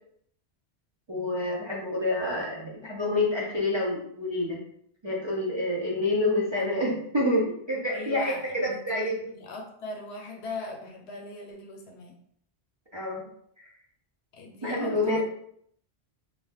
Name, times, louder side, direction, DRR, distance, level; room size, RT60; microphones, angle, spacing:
voice 1, 1.1-4.6 5.0-9.3 12.9-13.3 13.6-13.7 14.6-15.2, left 1 dB, 40° right, -6 dB, 0.4 m, -28 dB
voice 2, 7.9-12.2 14.3-15.2, left 3 dB, 80° left, 1 dB, 0.9 m, -39 dB
2.5 x 2.2 x 3.3 m, 0.68 s
omnidirectional pair, 1.1 m